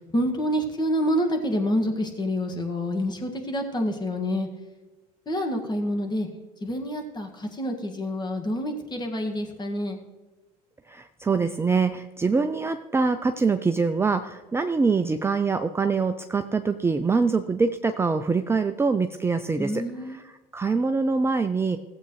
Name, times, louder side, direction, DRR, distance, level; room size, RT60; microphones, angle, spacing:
voice 1, 0.1-4.5 5.3-6.3 6.6-10.0 19.6-20.2, equal, 25° left, 3 dB, 1.8 m, -27 dB
voice 2, 10.9-21.8, right 4 dB, 15° right, 8 dB, 0.4 m, -24 dB
16.0 x 8.0 x 3.1 m, 1.2 s
hypercardioid pair, 80°, 19 cm